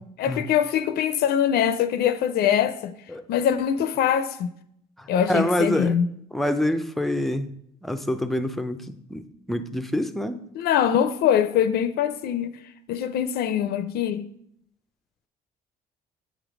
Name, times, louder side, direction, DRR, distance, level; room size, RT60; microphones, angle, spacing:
voice 1, 0.0-2.9 3.3-4.5 5.1-6.1 10.6-12.6 12.9-14.3, left 9 dB, 70° left, 0.4 m, -23 dB
voice 2, 5.0-6.0 6.3-7.5 7.8-10.4, left 1 dB, ahead, 0.4 m, -26 dB
7.8 x 3.1 x 5.0 m
cardioid pair, 110°, 17 cm